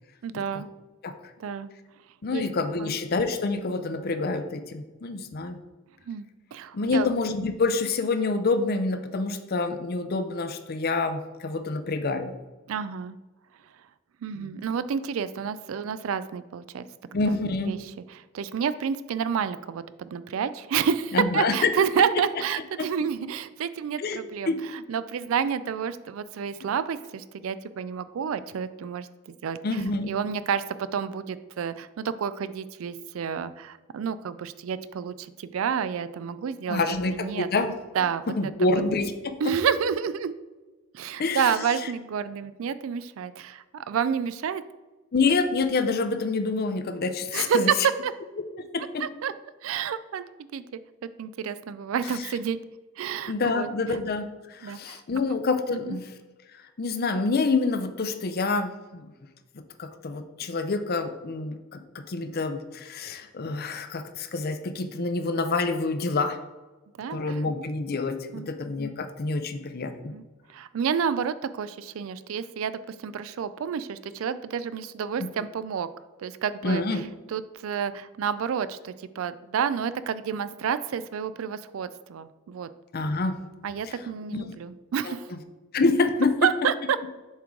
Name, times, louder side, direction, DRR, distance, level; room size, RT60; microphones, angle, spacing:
voice 1, 0.2-0.7 1.4-1.7 2.3-2.4 2.8-2.9 6.1-6.2 6.5-7.2 12.7-13.2 14.2-16.8 17.3-17.4 17.6-17.8 18.3-29.1 29.4-36.8 37.1-37.5 37.9-38.3 39.4-40.3 40.9-44.6 47.3-47.8 48.0-48.1 49.0-49.3 49.6-50.2 50.5-50.6 51.2-52.6 53.0-53.7 54.6-55.0 55.7-56.0 67.0-67.4 68.3-68.5 70.1-70.2 70.5-75.9 76.2-77.0 77.3-82.7 83.6-85.3 86.4-87.0, right 7 dB, 70° right, 14 dB, 0.3 m, -29 dB
voice 2, 2.2-5.6 6.7-12.3 14.4-14.5 17.1-17.8 21.1-21.7 22.8-22.9 24.0-24.2 24.5-24.6 29.6-30.1 36.7-37.7 38.4-39.3 41.2-41.6 45.1-47.7 48.6-49.0 53.3-56.1 56.8-59.1 59.8-61.8 62.1-66.4 67.1-70.1 75.2-75.3 76.6-77.0 82.9-83.4 83.8-83.9 84.3-84.5 85.0-85.4 85.7-86.3, left 3 dB, 45° left, 8 dB, 0.5 m, -27 dB
7.2 x 4.6 x 3.7 m, 1.2 s
head